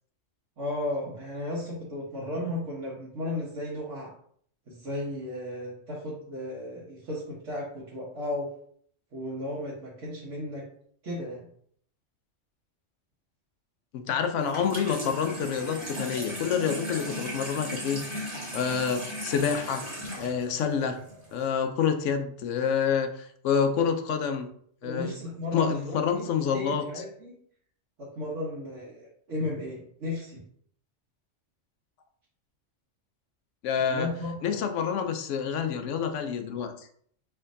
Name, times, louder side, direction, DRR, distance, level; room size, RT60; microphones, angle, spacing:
voice 1, 0.6-4.1 4.7-8.5 9.1-10.6 11.0-11.4 24.8-27.3 28.0-30.4 33.8-34.6, left 1 dB, 75° right, -7 dB, 1.4 m, -34 dB
voice 2, 13.9-19.8 20.2-21.0 21.3-24.5 24.8-25.1 25.5-27.0 33.6-34.1 34.4-36.9, left 7 dB, 80° left, 7 dB, 0.9 m, -28 dB
Water tap faucet / Sink (filling or washing), 14.4-21.4, equal, 25° right, 1.3 m, -37 dB
4.4 x 3.5 x 2.6 m, 0.62 s
omnidirectional pair, 1.2 m